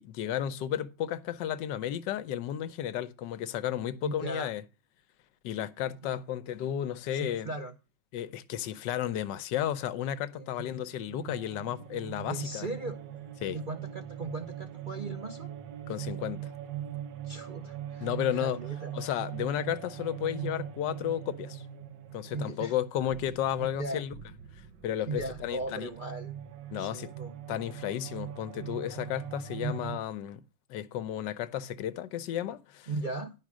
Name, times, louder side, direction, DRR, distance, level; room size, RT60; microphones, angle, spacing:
voice 1, 0.0-4.6 5.4-7.5 8.1-12.7 13.4-13.6 15.9-16.5 18.0-18.6 18.9-21.6 22.1-24.1 24.8-25.9 26.7-27.1 27.5-30.4 30.7-32.9, left 10 dB, 85° left, 1.3 m, -33 dB
voice 2, 4.0-4.5 7.1-7.7 10.3-10.7 12.3-13.0 13.5-15.5 17.2-19.0 22.3-22.7 23.6-24.1 25.1-26.3 26.8-27.4 29.6-29.9 32.9-33.3, right 2 dB, 50° right, 0.6 m, -38 dB
sound 1, 10.7-30.0, right 10 dB, 85° right, 1.6 m, -42 dB
10.5 x 5.2 x 6.0 m
omnidirectional pair, 1.9 m